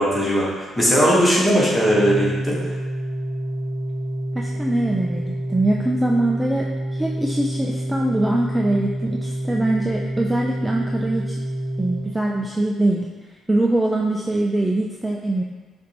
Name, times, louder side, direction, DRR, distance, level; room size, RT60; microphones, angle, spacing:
voice 1, 0.0-2.7, equal, 15° left, -6 dB, 1.5 m, -19 dB
Organ, 1.7-12.6, right 1 dB, 25° right, 0.8 m, -28 dB
voice 2, 4.3-11.4 11.8-13.1 13.5-15.4, right 1 dB, 10° right, -1 dB, 0.4 m, -22 dB
6.4 x 2.6 x 3.0 m, 1.3 s
cardioid pair, 90°, 0 cm